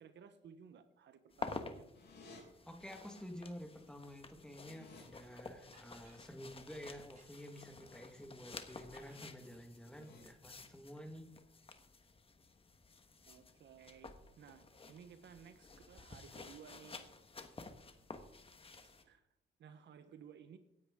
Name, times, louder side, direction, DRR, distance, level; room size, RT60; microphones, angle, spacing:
voice 1, 0.0-1.8 13.3-17.0 18.8-19.2 19.6-20.6, right 7 dB, 65° right, 10 dB, 1.2 m, -57 dB
sound 1, 1.3-19.0, left 3 dB, 30° left, 1.5 m, -52 dB
sound 2, 1.9-2.4 3.6-3.7 4.0-5.0 8.2-8.6 8.9-9.2 9.7-10.2, left 3 dB, 60° left, 4.9 m, -59 dB
voice 2, 2.7-11.3, equal, 5° left, 5 dB, 1.7 m, -51 dB
sound 3, 5.2-5.3 5.7-6.2 7.0-7.6 8.7-9.6, right 3 dB, 40° right, 5.8 m, -67 dB
17.0 x 9.6 x 3.8 m, 0.80 s
cardioid pair, 90°, 20 cm